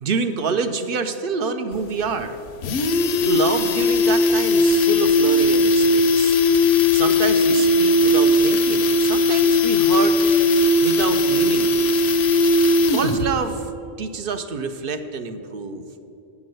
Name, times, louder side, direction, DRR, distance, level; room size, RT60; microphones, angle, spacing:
voice 1, 0.0-2.4 3.2-6.5 6.9-10.2 10.8-12.0 12.9-13.6 14.0-15.8, right 4 dB, 60° right, 8 dB, 0.7 m, -27 dB
sound 1, 1.7-1.8 2.1-2.2 2.5-13.3 13.6-13.7, left 2 dB, 70° left, 0.8 m, -18 dB
8.5 x 6.1 x 7.7 m, 2.7 s
omnidirectional pair, 1.2 m